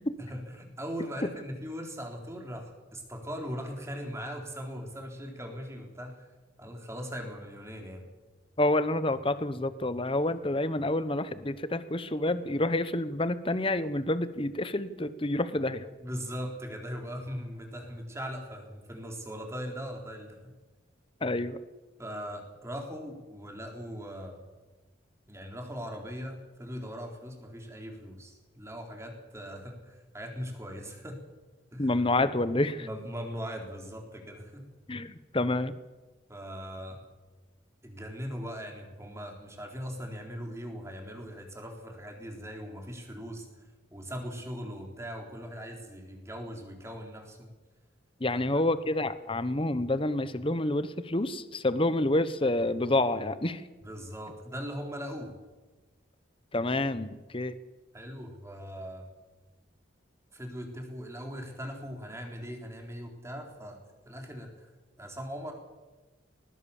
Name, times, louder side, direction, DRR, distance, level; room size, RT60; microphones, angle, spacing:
voice 1, 0.2-6.3 6.6-8.1 16.0-20.5 22.0-24.4 25.3-31.2 31.7-31.9 32.8-34.6 36.3-37.0 37.8-47.5 48.3-48.4 53.8-55.3 57.9-59.1 60.3-64.7 65.0-65.5, equal, 15° right, 2 dB, 4.0 m, -40 dB
voice 2, 8.6-15.9 21.2-21.6 31.8-32.9 34.9-35.7 48.2-53.7 56.5-57.5, left 2 dB, 30° left, 13 dB, 1.1 m, -28 dB
20.0 x 19.5 x 7.3 m, 1.2 s
head